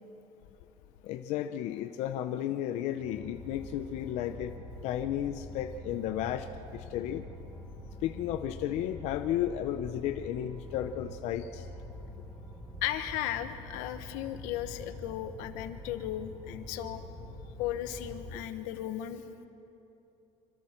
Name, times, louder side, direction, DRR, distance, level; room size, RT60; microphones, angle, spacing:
voice 1, 1.0-4.5 4.8-6.5 6.7-7.2 8.0-11.6, left 11 dB, 55° left, 8 dB, 0.7 m, -33 dB
sound 1, 3.0-18.3, left 1 dB, 5° right, 6.4 m, -45 dB
voice 2, 12.8-17.0 17.6-19.2, left 12 dB, 90° left, 9 dB, 1.2 m, -36 dB
26.5 x 26.0 x 4.5 m, 3.0 s
cardioid pair, 175°, 14 cm